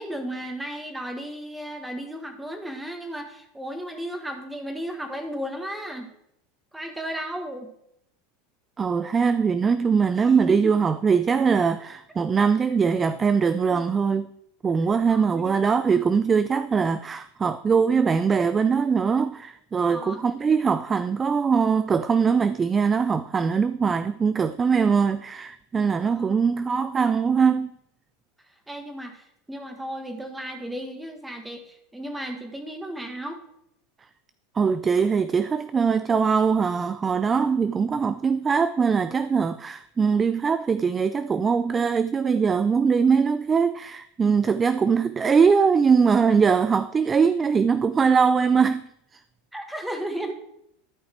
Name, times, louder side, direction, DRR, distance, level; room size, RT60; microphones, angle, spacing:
voice 1, 0.0-6.1 6.7-7.7 10.5-10.8 15.1-15.6 19.8-20.2 26.0-26.4 28.7-33.4 49.5-50.3, right 1 dB, 5° right, 1.5 m, -34 dB
voice 2, 8.8-14.3 14.6-27.7 34.6-48.8, right 6 dB, 25° right, 0.3 m, -22 dB
13.0 x 5.6 x 4.5 m
hypercardioid pair, 105°, 0 cm